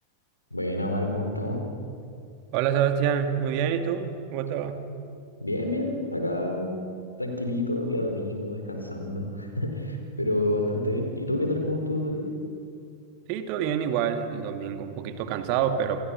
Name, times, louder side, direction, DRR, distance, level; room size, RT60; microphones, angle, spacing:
voice 1, 0.5-1.6 5.4-6.8 7.2-12.3, left 1 dB, 85° left, 3 dB, 4.4 m, -28 dB
voice 2, 2.5-4.8 13.3-16.0, right 8 dB, 45° right, 7 dB, 2.3 m, -27 dB
29.0 x 29.0 x 6.1 m, 2.5 s
figure-of-eight pair, 90°, 0 cm